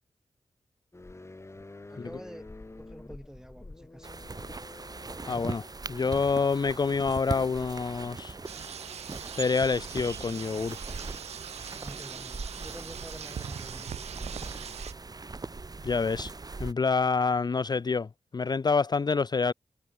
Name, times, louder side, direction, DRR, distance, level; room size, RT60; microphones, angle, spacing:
sound 1, 0.9-6.3, left 2 dB, 25° left, 1.4 m, -48 dB
voice 1, 1.9-2.5 2.8-4.1 11.7-14.7, equal, 5° right, 1.9 m, -48 dB
sound 2, 4.0-16.7, right 3 dB, 35° right, 1.3 m, -40 dB
voice 2, 5.2-8.4 9.3-10.8 15.8-19.5, left 4 dB, 40° left, 0.5 m, -27 dB
sound 3, 8.5-14.9, right 8 dB, 90° right, 1.0 m, -41 dB
cardioid pair, 50°, 11 cm